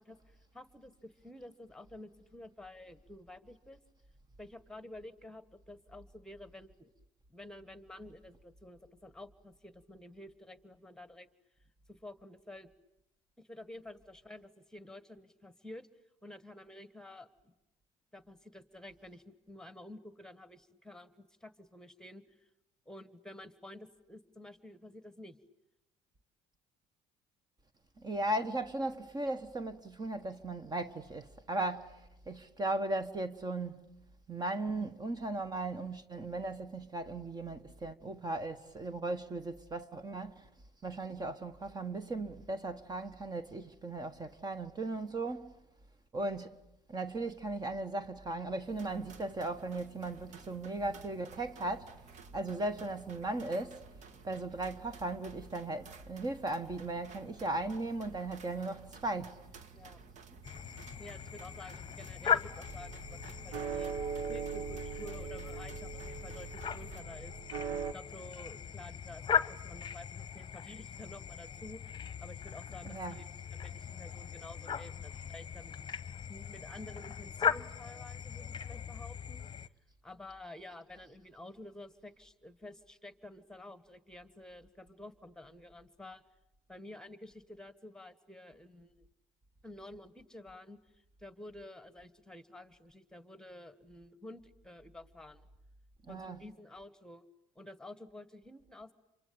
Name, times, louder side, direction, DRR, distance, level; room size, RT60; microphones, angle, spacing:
voice 1, 0.0-3.8 4.4-6.9 7.3-11.3 11.9-12.7 13.4-15.9 16.2-17.5 18.1-22.2 22.8-25.4 59.7-60.0 61.0-63.9 64.3-67.4 67.9-75.8 76.3-79.5 80.0-86.2 86.7-89.1 89.6-95.5 96.1-97.2 97.5-98.9, left 1 dB, 5° left, 1.6 m, -51 dB
voice 2, 28.0-32.0 32.3-33.9 34.3-40.5 40.8-45.5 46.1-46.5 46.9-51.9 52.3-53.8 54.2-59.4 72.8-73.2 96.1-96.4, right 2 dB, 30° right, 1.4 m, -37 dB
sound 1, 48.7-67.0, right 5 dB, 55° right, 1.7 m, -54 dB
sound 2, 60.4-79.7, left 7 dB, 35° left, 1.0 m, -39 dB
sound 3, 62.7-67.9, right 6 dB, 80° right, 1.3 m, -40 dB
28.0 x 24.5 x 8.7 m
supercardioid pair, 85°, 14 cm